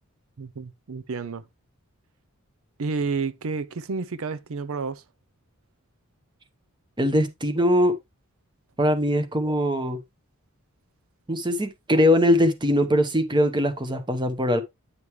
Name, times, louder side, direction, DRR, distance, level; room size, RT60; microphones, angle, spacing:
voice 1, 0.4-1.4 2.8-5.0, right 4 dB, 75° right, 0.5 m, -30 dB
voice 2, 7.0-8.0 8.8-10.0 11.3-14.6, equal, 20° right, 0.9 m, -21 dB
9.6 x 5.3 x 3.1 m
head